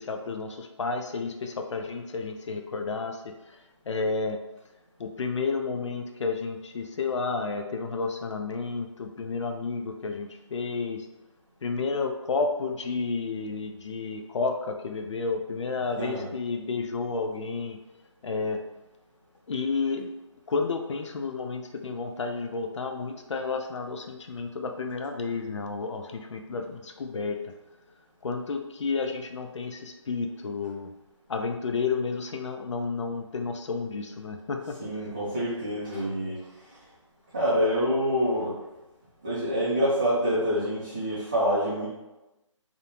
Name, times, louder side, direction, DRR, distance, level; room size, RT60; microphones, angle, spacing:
voice 1, 0.0-3.2 3.5-3.6 3.9-4.4 5.0-11.1 11.6-17.8 18.2-18.6 19.5-20.1 20.5-27.5 28.2-30.9 31.3-34.8, left 4 dB, 65° left, 4 dB, 0.4 m, -31 dB
voice 2, 16.0-16.3 34.8-36.8 37.3-38.6 39.2-41.9, equal, 15° right, -11 dB, 0.4 m, -26 dB
2.5 x 2.1 x 2.9 m, 1.0 s
figure-of-eight pair, 160°, 16 cm